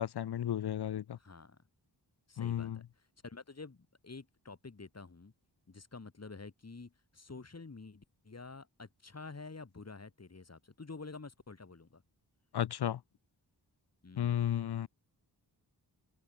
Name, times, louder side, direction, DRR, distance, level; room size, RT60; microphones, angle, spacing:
voice 1, 0.0-1.2 2.4-2.8 12.5-13.0 14.2-14.9, left 10 dB, 65° left, 0.6 m, -33 dB
voice 2, 1.2-1.6 2.3-2.8 3.2-5.3 5.7-12.0 14.0-14.5, left 3 dB, 35° left, 2.7 m, -49 dB
open air
wide cardioid pair, 75°, 43 cm